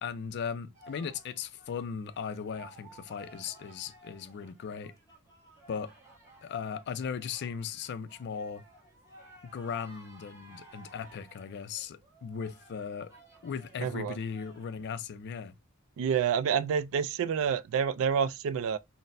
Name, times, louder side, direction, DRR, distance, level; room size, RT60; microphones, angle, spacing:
voice 1, 0.0-4.9 5.7-5.9 6.4-8.6 9.5-13.1 13.4-15.6, left 6 dB, 50° left, 0.3 m, -37 dB
sound 1, 0.7-14.9, right 2 dB, 15° right, 1.3 m, -56 dB
voice 2, 13.8-14.2 16.0-18.8, right 7 dB, 65° right, 0.3 m, -28 dB
4.0 x 2.0 x 2.6 m
head